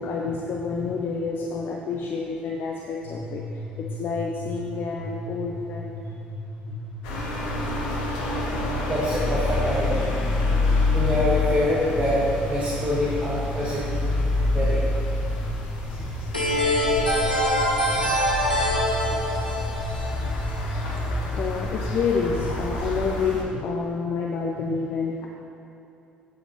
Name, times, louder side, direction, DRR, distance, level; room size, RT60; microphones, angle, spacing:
voice 1, 0.0-5.9 6.7-6.8 16.0-16.1 16.9-17.1 17.9-18.2 19.0-19.2 20.1-20.3 21.2-25.3, left 5 dB, 45° left, 0 dB, 0.8 m, -29 dB
sound 1, 3.0-22.6, left 1 dB, 65° right, 2.0 m, -36 dB
sound 2, 7.0-23.4, left 2 dB, 65° left, 1.4 m, -27 dB
voice 2, 8.8-10.1 10.9-13.8 14.5-14.8 19.9-20.1, equal, 25° right, -7 dB, 2.1 m, -25 dB
sound 3, 16.3-21.0, equal, 90° left, 1.0 m, -24 dB
14.5 x 7.8 x 3.3 m, 2.9 s
figure-of-eight pair, 50°, 5 cm